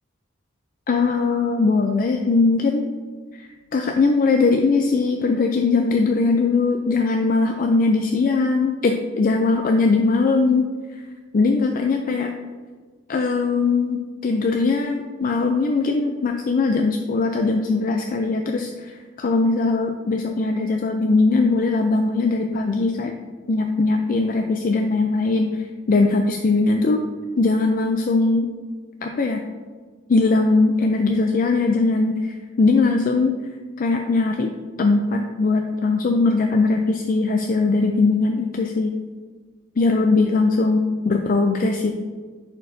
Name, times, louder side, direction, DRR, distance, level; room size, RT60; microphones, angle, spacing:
voice 1, 0.9-2.9 3.3-10.7 11.3-12.3 13.1-23.1 23.5-25.5 25.9-27.0 27.4-28.5 29.0-29.4 30.1-33.3 33.8-34.5 34.8-38.9 39.8-41.9, left 3 dB, 45° left, 4 dB, 0.4 m, -20 dB
10.5 x 4.5 x 2.7 m, 1.4 s
head